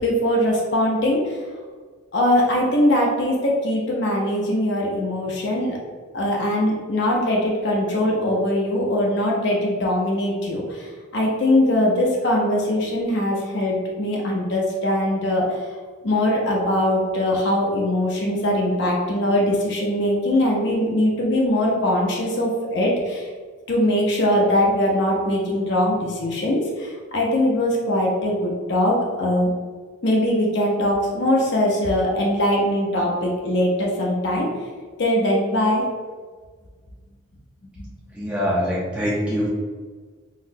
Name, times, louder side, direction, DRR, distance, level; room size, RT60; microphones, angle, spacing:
voice 1, 0.0-1.4 2.1-5.8 6.1-15.6 16.0-23.3 23.7-29.5 30.0-34.5 35.0-35.9 37.8-37.9, left 1 dB, 60° left, -2 dB, 0.5 m, -21 dB
voice 2, 38.1-39.5, equal, 5° right, -8 dB, 0.4 m, -24 dB
3.9 x 2.1 x 2.6 m, 1.5 s
head